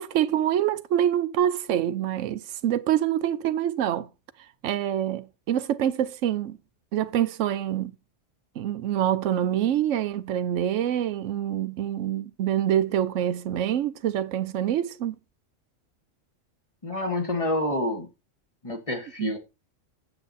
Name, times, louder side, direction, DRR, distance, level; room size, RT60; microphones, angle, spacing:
voice 1, 0.0-4.1 4.6-6.6 6.9-7.9 8.6-15.2 19.2-19.3, right 10 dB, 80° right, 1.0 m, -26 dB
voice 2, 16.8-18.1 18.6-19.4, left 1 dB, 25° left, 1.6 m, -28 dB
7.9 x 7.8 x 4.1 m
omnidirectional pair, 1.3 m